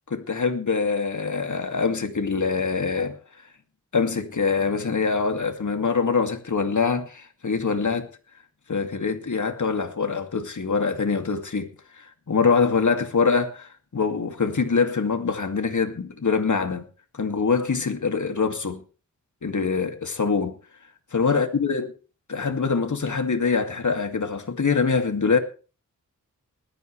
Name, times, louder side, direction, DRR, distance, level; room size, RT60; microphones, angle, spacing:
voice 1, 0.1-3.2 3.9-8.1 8.7-16.8 17.1-18.8 19.4-20.6 21.1-21.9 22.3-25.4, left 5 dB, 65° left, 2.4 m, -24 dB
20.0 x 13.5 x 3.3 m
wide cardioid pair, 105°, 32 cm